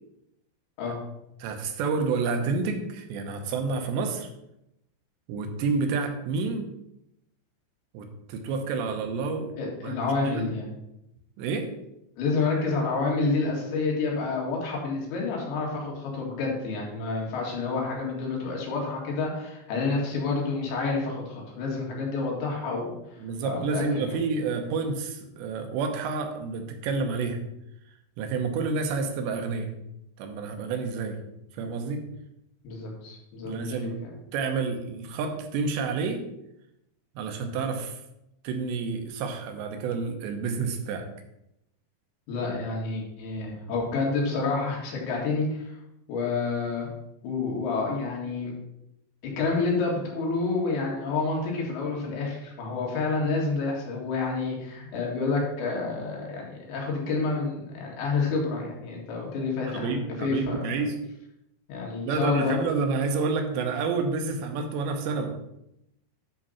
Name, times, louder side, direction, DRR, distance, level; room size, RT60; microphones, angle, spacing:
voice 1, 1.4-4.3 5.3-6.7 7.9-9.5 9.8-10.5 11.4-11.7 23.2-27.4 28.2-29.7 30.2-31.2 31.5-32.1 33.5-34.0 34.3-36.2 37.2-38.0 38.4-41.1 54.8-54.9 59.7-61.0 62.0-65.4, right 4 dB, 80° right, 6 dB, 3.1 m, -29 dB
voice 2, 9.6-10.7 12.2-24.2 32.6-33.7 34.0-34.2 42.3-45.8 46.1-46.9 47.2-48.5 49.4-59.9 60.2-60.7 61.7-62.6, left 3 dB, 80° left, -2 dB, 4.2 m, -29 dB
10.5 x 3.8 x 5.5 m, 0.84 s
omnidirectional pair, 5.1 m